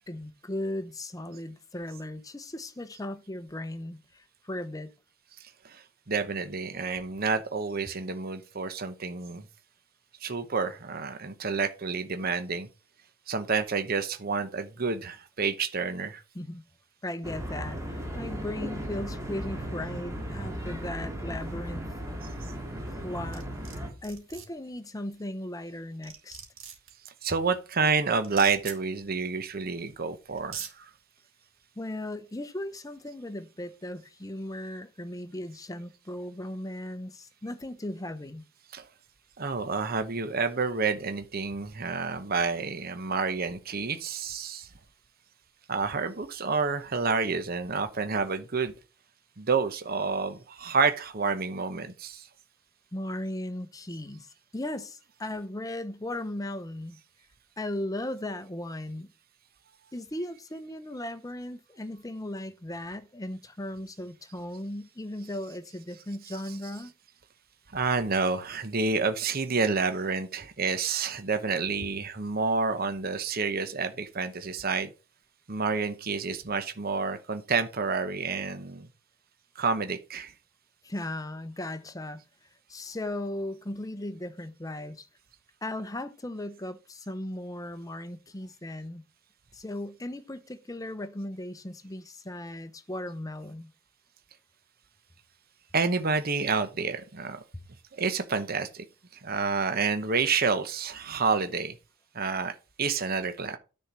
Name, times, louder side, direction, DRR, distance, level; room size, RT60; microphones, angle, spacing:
voice 1, 0.1-4.9 16.3-16.6 17.0-21.9 22.9-23.5 24.0-26.4 31.8-38.4 52.9-57.0 57.6-59.1 59.9-66.9 80.8-82.2 82.7-85.1 85.6-89.0 89.5-93.7 97.5-97.6, left 1 dB, 15° left, 0.8 m, -37 dB
voice 2, 5.4-9.5 10.2-12.7 13.3-16.2 22.2-22.3 27.1-30.9 38.7-38.9 39.4-44.7 45.7-48.7 49.4-52.3 65.2-65.3 65.9-66.6 67.7-74.9 75.5-78.9 79.6-80.3 95.7-97.4 97.9-98.8 99.1-101.8 102.1-103.6, right 4 dB, 45° right, 0.9 m, -29 dB
sound 1, 17.2-23.9, equal, 15° right, 2.4 m, -36 dB
sound 2, 23.3-23.8 24.0-24.5 25.7-25.8 26.0-26.9 28.2-28.8 29.9-30.0 30.4-30.7, right 8 dB, 75° right, 2.6 m, -40 dB
10.0 x 4.4 x 6.1 m
head